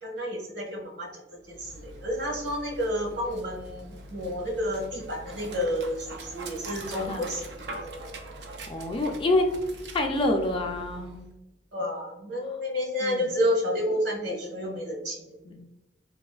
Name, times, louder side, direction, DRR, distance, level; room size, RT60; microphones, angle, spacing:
voice 1, 0.0-7.5 11.7-15.2, equal, 85° right, -2 dB, 1.3 m, -30 dB
Dog, 1.4-11.3, right 2 dB, 65° right, 0.5 m, -43 dB
voice 2, 8.7-9.5 9.9-11.2 13.0-13.2 15.5-15.6, left 2 dB, 30° left, 3 dB, 0.3 m, -26 dB
4.0 x 2.5 x 2.3 m, 0.96 s
head